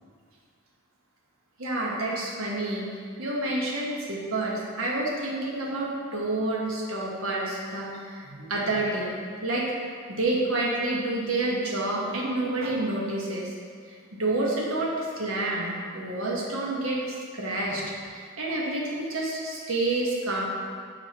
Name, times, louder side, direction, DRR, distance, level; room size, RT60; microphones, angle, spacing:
voice 1, 1.6-2.9 3.2-9.7 10.1-13.5 13.9-17.8 18.1-20.4, right 2 dB, 80° right, -3 dB, 1.3 m, -29 dB
7.9 x 5.1 x 3.0 m, 2.2 s
head